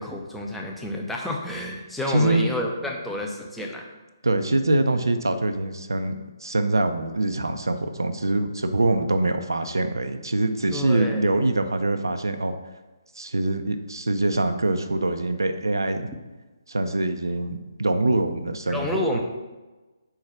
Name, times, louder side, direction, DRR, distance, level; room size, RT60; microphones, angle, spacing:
voice 1, 0.0-3.8 10.7-11.3 18.7-19.2, left 1 dB, ahead, -1 dB, 0.7 m, -30 dB
voice 2, 2.1-2.5 4.2-6.2 6.4-12.5 13.2-16.1 16.7-19.2, right 2 dB, 70° right, 8 dB, 0.5 m, -24 dB
4.7 x 4.6 x 5.7 m, 1.2 s
figure-of-eight pair, 140°, 2 cm